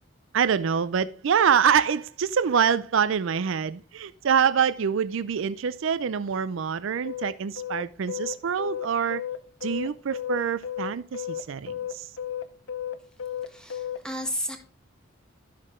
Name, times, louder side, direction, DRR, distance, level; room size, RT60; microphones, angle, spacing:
voice 1, 0.3-9.2 9.6-12.1, right 7 dB, 65° right, 0.4 m, -25 dB
sound 1, 7.0-14.0, left 9 dB, 65° left, 0.7 m, -33 dB
voice 2, 13.4-14.6, equal, 5° left, 1.5 m, -33 dB
12.0 x 6.4 x 3.6 m
head